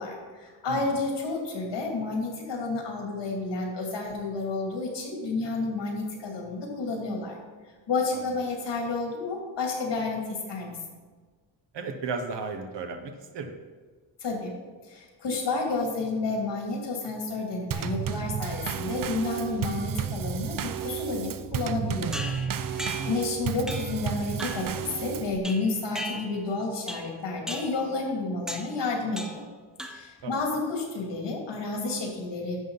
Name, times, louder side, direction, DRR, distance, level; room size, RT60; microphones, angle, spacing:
voice 1, 0.0-7.4 7.9-10.8 14.2-14.5 14.8-22.3 23.0-29.4 29.9-32.6, left 3 dB, 70° left, 0 dB, 2.6 m, -30 dB
voice 2, 11.7-13.5 23.0-23.2 30.2-30.3, right 4 dB, 70° right, 6 dB, 1.1 m, -34 dB
Drum kit / Snare drum / Bass drum, 17.7-25.4, right 8 dB, 50° right, 0.5 m, -32 dB
sound 1, 22.1-23.2 23.7-24.0 24.4-24.7 25.4-26.5 26.9-27.2 27.5-27.8 28.5-28.8 29.2-29.5 29.8-30.2, equal, ahead, 0.8 m, -37 dB
11.0 x 7.4 x 4.0 m, 1.5 s
cardioid pair, 120°, 44 cm